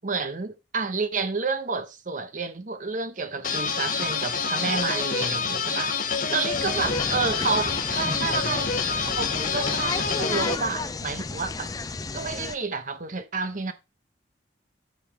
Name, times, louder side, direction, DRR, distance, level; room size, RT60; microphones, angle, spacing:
voice 1, 0.0-13.7, right 4 dB, 45° right, 0.9 m, -30 dB
sound 1, 3.4-10.6, left 5 dB, 45° left, 0.9 m, -27 dB
sound 2, 6.5-12.6, left 3 dB, 20° left, 0.4 m, -33 dB
9.6 x 5.5 x 3.3 m
head